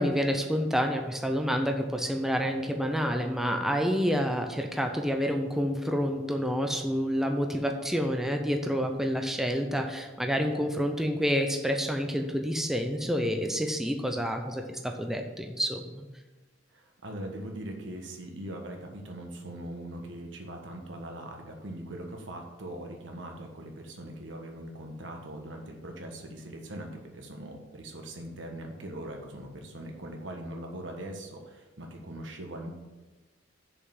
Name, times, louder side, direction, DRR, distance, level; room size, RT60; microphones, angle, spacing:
voice 1, 0.0-16.0, equal, ahead, 3 dB, 0.6 m, -28 dB
voice 2, 16.7-32.7, right 1 dB, 70° right, 2 dB, 1.5 m, -41 dB
6.8 x 5.5 x 7.2 m, 1.2 s
head